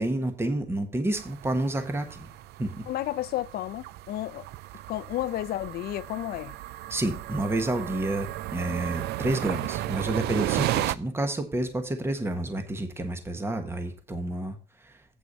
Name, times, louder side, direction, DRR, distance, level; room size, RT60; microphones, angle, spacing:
voice 1, 0.0-2.3 2.6-2.8 6.9-15.0, right 1 dB, 15° right, 1.3 m, -29 dB
sound 1, 1.1-10.9, right 15 dB, 75° right, 0.4 m, -34 dB
voice 2, 2.9-4.4 4.9-6.5, left 14 dB, 65° left, 0.6 m, -32 dB
8.3 x 6.1 x 5.3 m
cardioid pair, 110°, 17 cm